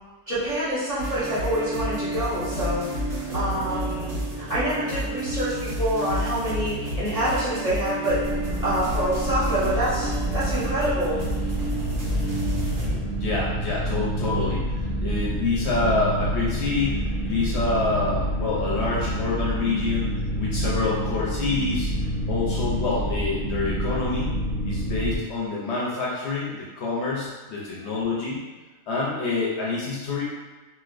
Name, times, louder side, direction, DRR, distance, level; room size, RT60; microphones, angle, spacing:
voice 1, 0.3-2.8 3.1-8.2 8.6-11.2, right 1 dB, 30° right, -12 dB, 1.1 m, -26 dB
sound 1, 1.0-12.9, equal, 90° right, 1.3 m, -30 dB
sound 2, 8.2-25.2, equal, 20° left, 0.8 m, -28 dB
voice 2, 13.1-20.1 20.4-21.9 22.3-24.3 24.6-28.4 28.9-30.3, left 3 dB, 65° left, -5 dB, 0.8 m, -27 dB
3.2 x 2.7 x 2.4 m, 1.3 s
omnidirectional pair, 1.3 m